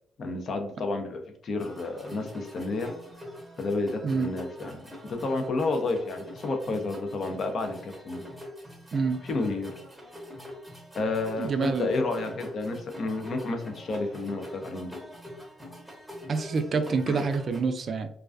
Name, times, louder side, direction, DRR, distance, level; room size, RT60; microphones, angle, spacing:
voice 1, 0.2-2.9 3.6-8.2 9.2-9.7 11.0-15.0 17.1-17.2, left 3 dB, 55° left, 4 dB, 0.5 m, -31 dB
sound 1, 1.6-17.6, left 1 dB, 5° right, 0.8 m, -44 dB
voice 2, 11.4-11.9 16.3-18.1, right 4 dB, 50° right, 8 dB, 0.3 m, -27 dB
2.3 x 2.2 x 2.4 m, 0.66 s
cardioid pair, 85°, 0 cm